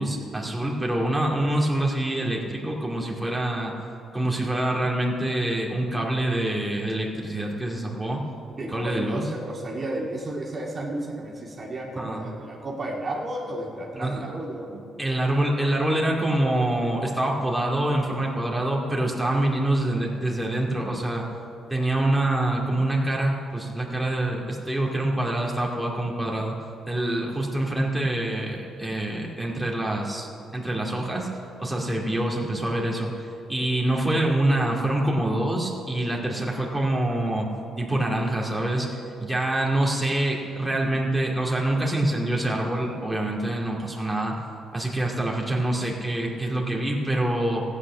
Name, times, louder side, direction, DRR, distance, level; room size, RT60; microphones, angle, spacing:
voice 1, 0.0-3.7 4.1-8.2 8.7-9.3 12.0-12.3 13.9-14.2 15.0-21.2 21.7-26.5 26.9-31.3 31.6-33.1 33.5-37.5 37.8-44.4 44.7-47.6, right 1 dB, 5° right, -3 dB, 2.2 m, -25 dB
voice 2, 8.6-14.8, right 1 dB, 35° right, -2 dB, 2.0 m, -33 dB
15.0 x 8.6 x 6.1 m, 2.6 s
cardioid pair, 90°, 0 cm